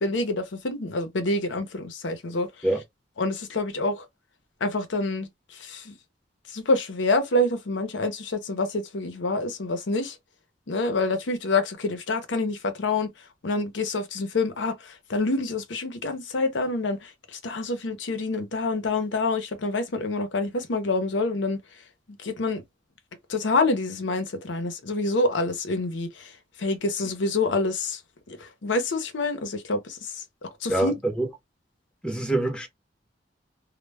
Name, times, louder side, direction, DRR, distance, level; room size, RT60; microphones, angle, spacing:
voice 1, 0.0-2.7 3.2-4.1 4.6-5.9 6.5-10.2 10.7-13.1 13.4-21.6 22.2-22.6 23.3-28.0 28.3-31.0, left 2 dB, 85° left, 0.6 m, -27 dB
voice 2, 30.7-31.3 32.0-32.7, right 1 dB, 5° left, 0.7 m, -25 dB
2.1 x 2.1 x 3.2 m
head